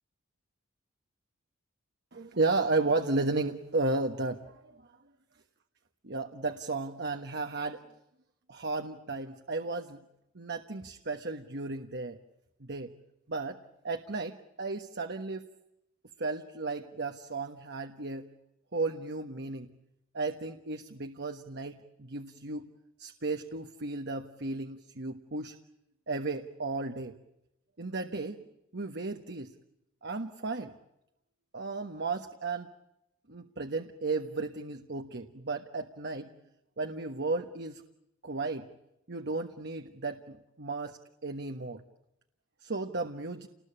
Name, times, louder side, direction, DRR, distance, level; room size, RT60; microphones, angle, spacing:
voice 1, 2.1-4.6 6.0-7.8 8.5-10.0 10.3-12.2 12.6-12.9 13.3-13.6 13.8-15.4 16.2-18.2 18.7-19.7 20.1-22.7 23.0-25.6 26.1-27.1 27.8-28.4 28.7-29.5 30.0-30.7 31.5-32.7 33.3-36.3 36.8-37.8 38.2-38.7 39.1-41.8 42.6-43.5, right 3 dB, 55° right, 6 dB, 1.3 m, -34 dB
29.5 x 20.0 x 8.8 m, 0.88 s
head